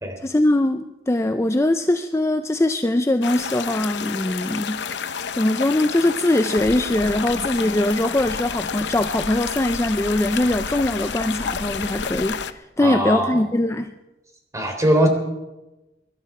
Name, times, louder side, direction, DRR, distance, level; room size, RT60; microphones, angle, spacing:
voice 1, 0.2-4.8 5.4-13.9, left 1 dB, 15° left, 8 dB, 0.5 m, -21 dB
sound 1, 3.2-12.5, left 6 dB, 70° left, 0.7 m, -29 dB
voice 2, 12.8-13.4 14.5-15.1, right 1 dB, 20° right, 4 dB, 3.4 m, -20 dB
24.0 x 12.0 x 4.8 m, 1.0 s
head